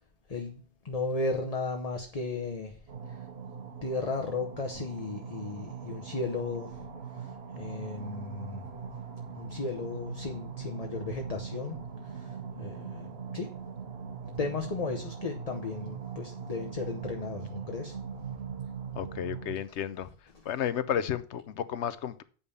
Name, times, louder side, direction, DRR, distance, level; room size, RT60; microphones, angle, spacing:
voice 1, 0.3-2.8 3.1-3.3 3.8-6.8 7.1-8.6 9.4-13.6 14.4-18.0 20.3-20.4, left 3 dB, 35° left, 1.0 m, -35 dB
sound 1, 2.9-19.6, right 6 dB, 65° right, 1.3 m, -41 dB
voice 2, 18.9-20.1 20.4-22.2, left 9 dB, 85° left, 1.0 m, -32 dB
8.7 x 5.5 x 6.8 m
omnidirectional pair, 1.1 m